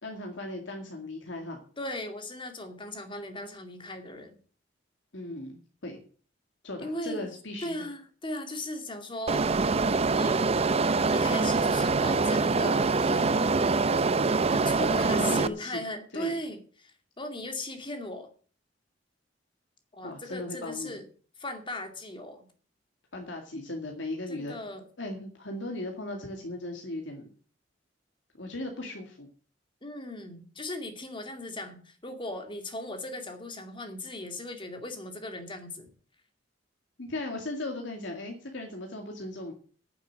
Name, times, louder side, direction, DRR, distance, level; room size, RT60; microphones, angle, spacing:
voice 1, 0.0-1.6 5.1-6.0 6.6-7.9 15.0-15.8 16.1-16.4 20.0-21.0 23.1-24.6 25.0-27.3 28.4-29.3 37.0-39.5, left 2 dB, 75° left, 2 dB, 2.2 m, -37 dB
voice 2, 1.8-4.4 6.8-7.3 7.6-9.5 10.1-10.6 11.1-13.6 14.5-18.3 19.9-21.1 21.4-22.5 24.3-24.8 29.8-35.9, left 1 dB, 25° left, 6 dB, 2.3 m, -38 dB
sound 1, 9.3-15.5, right 4 dB, 35° right, 0.6 m, -24 dB
9.5 x 7.2 x 8.7 m, 0.42 s
head